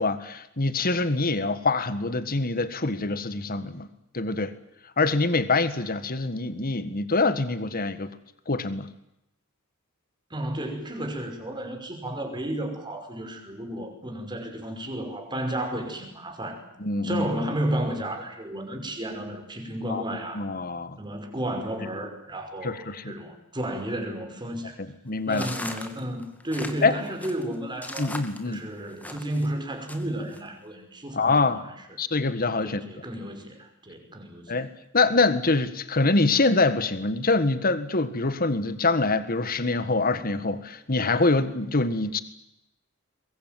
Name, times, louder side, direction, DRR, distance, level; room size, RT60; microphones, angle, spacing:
voice 1, 0.0-3.9 4.1-4.5 5.0-8.1 8.5-8.9 16.8-17.3 19.9-21.0 22.6-23.2 25.1-25.5 26.8-26.9 28.0-28.6 31.1-31.6 32.0-32.8 34.5-34.7 34.9-42.2, left 3 dB, 45° left, 13 dB, 1.7 m, -25 dB
voice 2, 10.3-16.6 17.0-20.5 21.0-24.8 25.3-28.2 28.4-31.7 32.6-34.6, right 1 dB, 20° right, 4 dB, 5.6 m, -32 dB
sound 1, 25.3-29.5 29.9-30.4, left 1 dB, 10° left, 2.3 m, -38 dB
23.0 x 22.5 x 9.3 m, 0.83 s
head